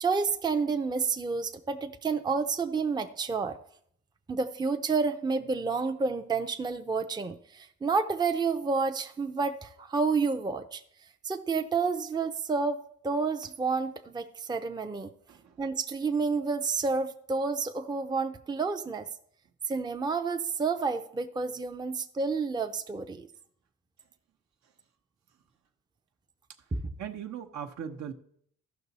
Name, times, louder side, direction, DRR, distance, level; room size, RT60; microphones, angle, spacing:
voice 1, 0.0-3.6 4.3-10.8 11.2-15.1 15.6-19.1 19.7-23.3 26.7-26.8, right 4 dB, 15° right, 6 dB, 0.6 m, -30 dB
voice 2, 15.3-15.6 27.0-28.1, right 8 dB, 65° right, 5 dB, 1.0 m, -39 dB
14.5 x 5.9 x 4.1 m, 0.66 s
cardioid pair, 90°, 30 cm